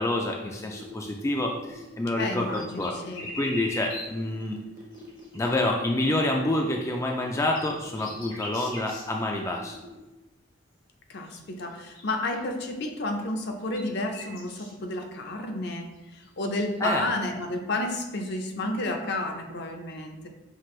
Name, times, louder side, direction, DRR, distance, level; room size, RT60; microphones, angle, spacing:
voice 1, 0.0-3.0 3.4-4.6 5.3-9.8 16.8-17.0, left 1 dB, 15° left, 1 dB, 0.3 m, -28 dB
sound 1, 0.7-10.0, right 1 dB, 45° right, 0.8 m, -46 dB
sound 2, 1.4-1.6 1.8-1.9 2.3-4.3 4.8-5.5 6.5-6.6 7.2-9.2 9.5-9.6 11.3-11.4 11.7-12.4 13.4-14.7 16.0-17.1, left 1 dB, 80° left, 1.4 m, -42 dB
voice 2, 2.2-3.3 11.1-20.3, left 2 dB, 60° left, 4 dB, 0.6 m, -31 dB
5.8 x 2.5 x 3.1 m, 1.1 s
head